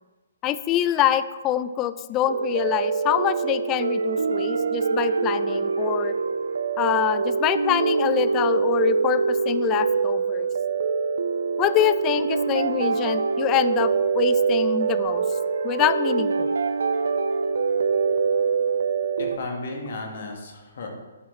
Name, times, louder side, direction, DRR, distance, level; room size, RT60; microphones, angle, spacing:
voice 1, 0.4-6.1 6.8-10.5 11.6-15.2 15.6-16.5, left 12 dB, 25° left, 13 dB, 0.3 m, -25 dB
sound 1, 2.3-19.4, right 5 dB, 70° right, 0.4 m, -24 dB
voice 2, 19.2-20.9, left 3 dB, 60° left, 1 dB, 1.6 m, -34 dB
11.0 x 4.6 x 3.2 m, 1.2 s
figure-of-eight pair, 135°, 0 cm